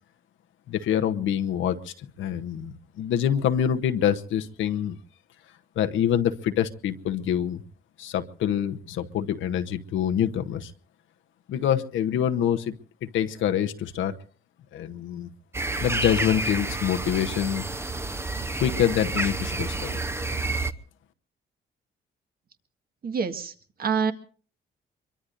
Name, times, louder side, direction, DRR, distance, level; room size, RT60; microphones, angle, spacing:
voice 1, 0.7-5.0 5.8-7.6 8.0-10.7 11.5-12.7 13.0-14.1 14.7-15.3 15.8-17.7 18.6-20.0, left 9 dB, 80° left, 8 dB, 1.0 m, -26 dB
sound 1, 15.5-20.7, right 2 dB, 10° right, 0.8 m, -29 dB
voice 2, 23.0-23.5 23.8-24.1, right 6 dB, 50° right, 7 dB, 1.7 m, -26 dB
24.5 x 23.0 x 2.6 m, 0.41 s
cardioid pair, 90°, 20 cm